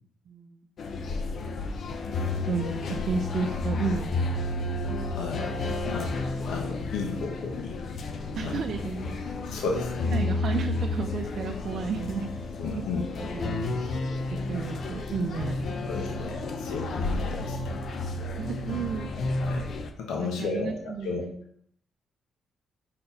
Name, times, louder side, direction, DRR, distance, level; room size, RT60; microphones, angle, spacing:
voice 1, 0.3-0.6 2.4-4.5 8.3-9.4 10.1-13.8 14.3-16.1 18.3-19.1 20.2-21.4, right 5 dB, 60° right, 4 dB, 0.6 m, -33 dB
sound 1, 0.8-19.9, left 2 dB, 55° left, 0.8 m, -31 dB
voice 2, 5.1-6.2 6.4-7.8 8.4-8.6 9.5-10.1 12.6-13.0 15.9-17.9 19.1-19.7 20.0-21.2, left 4 dB, 85° left, 0 dB, 1.1 m, -34 dB
5.3 x 4.6 x 5.3 m, 0.66 s
cardioid pair, 90°, 0 cm